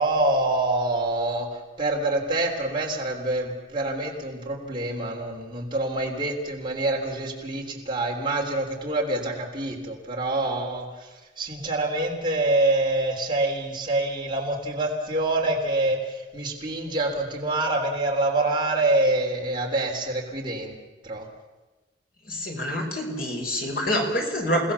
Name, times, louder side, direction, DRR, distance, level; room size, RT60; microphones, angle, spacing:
voice 1, 0.0-1.5 1.8-11.1 11.4-20.7 21.0-21.3, right 2 dB, 25° right, -1 dB, 3.5 m, -26 dB
voice 2, 22.3-24.7, equal, 50° left, 1 dB, 5.2 m, -26 dB
30.0 x 18.5 x 7.2 m, 1.2 s
head